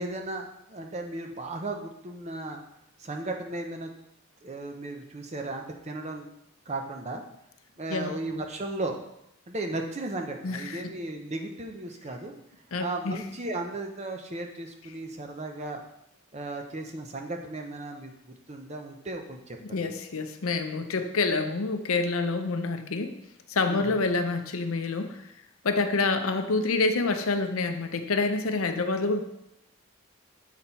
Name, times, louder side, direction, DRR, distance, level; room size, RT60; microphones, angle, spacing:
voice 1, 0.0-2.6 3.0-3.9 4.4-6.3 6.7-7.2 7.8-9.0 9.5-12.3 12.8-15.8 16.3-19.9 23.7-24.0, right 2 dB, 30° right, 3 dB, 0.7 m, -35 dB
voice 2, 10.4-10.9 12.7-13.2 19.6-23.2 23.5-25.3 25.6-29.2, left 3 dB, 80° left, 7 dB, 0.6 m, -27 dB
7.5 x 4.1 x 4.3 m, 0.82 s
head